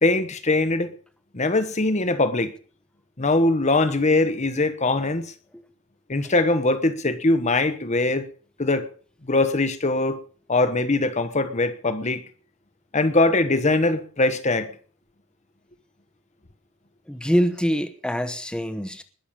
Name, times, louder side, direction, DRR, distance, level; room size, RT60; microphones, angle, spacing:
voice 1, 0.0-0.9 1.3-2.5 3.2-5.3 6.1-8.3 8.6-8.9 9.3-10.2 10.5-12.2 12.9-14.7, left 2 dB, 35° left, 1.1 m, -22 dB
voice 2, 17.1-19.0, equal, 5° left, 1.1 m, -24 dB
20.5 x 7.0 x 7.4 m
head